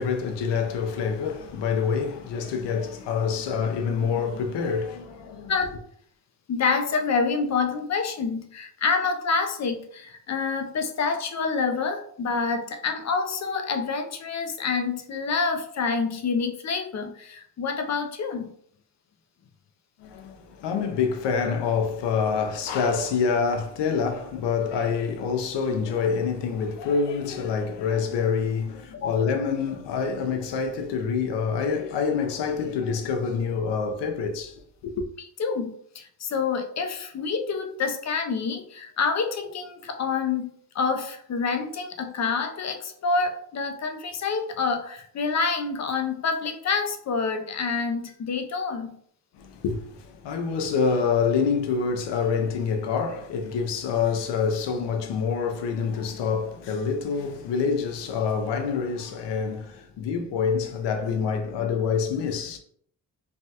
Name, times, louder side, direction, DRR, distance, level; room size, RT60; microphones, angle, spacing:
voice 1, 0.0-5.5 20.0-35.0 49.3-62.6, left 5 dB, 85° left, 0.6 m, -26 dB
voice 2, 6.5-18.5 28.9-29.2 35.4-40.5 40.7-49.0, left 4 dB, 45° left, 0.5 m, -27 dB
3.3 x 2.2 x 2.8 m
cardioid pair, 95°, 41 cm